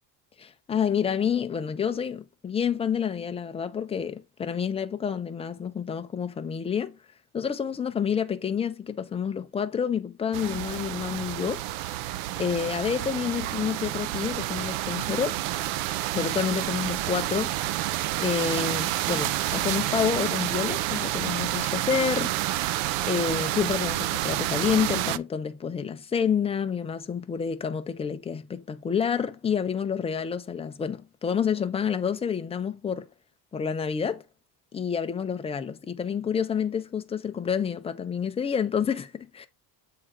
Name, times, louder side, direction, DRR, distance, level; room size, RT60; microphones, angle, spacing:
voice 1, 0.4-7.0 7.3-11.6 12.4-15.4 16.1-17.6 18.2-22.3 23.0-33.1 33.5-34.2 34.7-39.5, left 7 dB, 15° left, 0.3 m, -28 dB
sound 1, 10.3-25.2, right 14 dB, 80° right, 0.6 m, -29 dB
7.6 x 3.7 x 4.4 m
cardioid pair, 160°, 44 cm